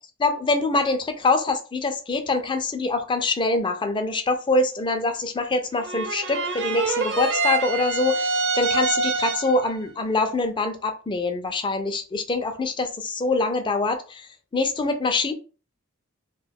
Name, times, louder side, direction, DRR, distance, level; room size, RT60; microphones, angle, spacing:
voice 1, 0.2-15.3, left 3 dB, 25° left, 0.4 m, -24 dB
sound 1, 5.8-9.7, right 3 dB, 55° right, 0.5 m, -25 dB
2.6 x 2.2 x 3.4 m
head